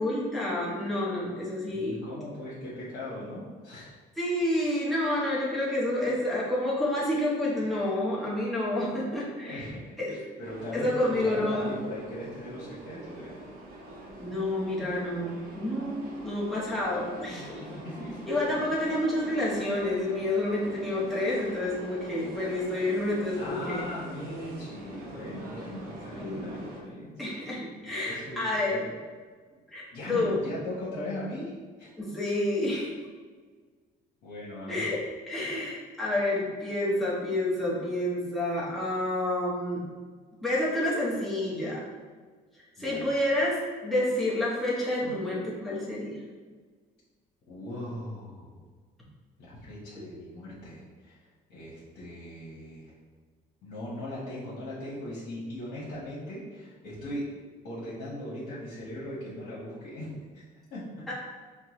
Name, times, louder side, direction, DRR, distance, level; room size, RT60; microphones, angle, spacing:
voice 1, 0.0-2.1 4.2-9.7 10.0-10.2 10.7-11.7 14.2-17.6 18.3-23.8 26.1-26.6 27.2-28.8 29.7-29.8 30.1-30.4 32.0-32.9 34.7-35.0 35.3-39.8 40.4-41.8 42.8-46.2 61.1-61.2, left 1 dB, ahead, -7 dB, 0.9 m, -29 dB
voice 2, 1.7-4.0 9.4-13.4 17.3-18.2 18.8-19.0 23.4-27.7 28.0-28.9 29.9-31.9 34.2-34.9 42.8-43.0 47.5-48.5 49.4-51.2 51.5-52.9 53.6-57.3 57.6-60.1 60.7-60.8, left 1 dB, 70° left, -8 dB, 1.1 m, -39 dB
sound 1, 10.4-26.8, right 2 dB, 60° right, 0.8 m, -45 dB
4.5 x 2.2 x 3.0 m, 1.5 s
cardioid pair, 110°, 17 cm